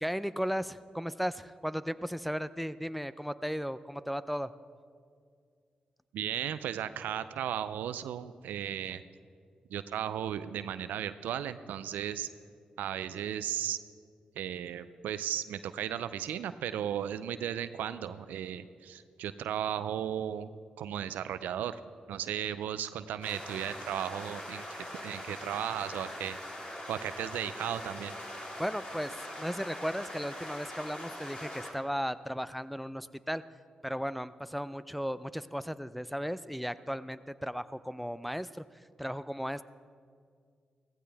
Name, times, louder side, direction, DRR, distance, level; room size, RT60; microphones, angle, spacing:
voice 1, 0.0-4.5 28.6-33.4 33.8-38.6 39.0-39.6, equal, ahead, 14 dB, 0.5 m, -35 dB
voice 2, 6.1-9.0 9.7-12.3 12.8-13.8 14.4-20.5 20.8-21.8 22.1-26.4 26.7-28.1, right 10 dB, 90° right, 13 dB, 0.4 m, -35 dB
sound 1, 23.2-31.7, left 1 dB, 40° left, 4.0 m, -42 dB
16.5 x 15.0 x 3.4 m, 2.2 s
supercardioid pair, 45°, 3 cm